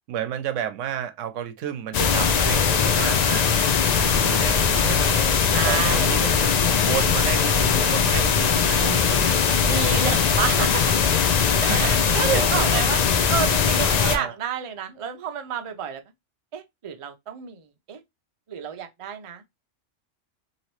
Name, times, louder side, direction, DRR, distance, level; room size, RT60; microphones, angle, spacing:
voice 1, 0.1-3.5 4.0-5.3 5.6-6.5 6.8-9.4 9.8-10.2 11.5-12.0 12.3-12.8 14.0-14.3, right 9 dB, 90° right, 0.9 m, -31 dB
sound 1, 1.9-14.2, left 6 dB, 70° left, 0.4 m, -20 dB
voice 2, 5.5-6.1 9.7-10.9 11.6-16.0 16.5-18.0 18.5-19.4, right 8 dB, 55° right, 0.3 m, -30 dB
2.9 x 2.8 x 2.9 m
omnidirectional pair, 1.2 m